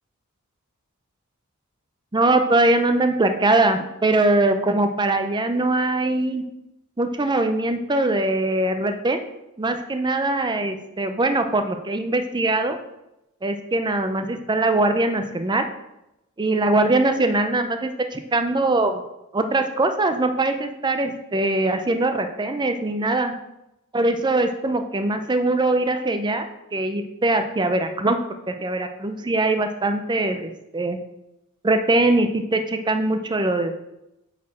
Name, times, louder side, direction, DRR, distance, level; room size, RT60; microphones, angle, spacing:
voice 1, 2.1-6.4 7.0-9.2 9.6-12.8 13.4-15.7 16.4-19.0 19.3-23.3 23.9-28.2 28.5-31.0 31.6-33.7, right 2 dB, 20° right, 7 dB, 0.5 m, -22 dB
8.4 x 4.2 x 4.3 m, 0.90 s
head